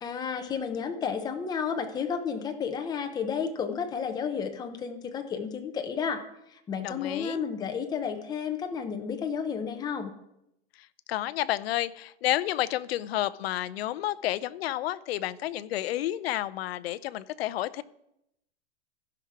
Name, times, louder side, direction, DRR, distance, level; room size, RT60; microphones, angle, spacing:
voice 1, 0.0-6.2 6.5-10.1, left 6 dB, 10° left, 6 dB, 0.6 m, -32 dB
voice 2, 6.8-7.4 11.1-17.8, left 14 dB, 55° left, 18 dB, 0.5 m, -30 dB
15.0 x 5.9 x 4.7 m, 0.82 s
supercardioid pair, 150°, 36 cm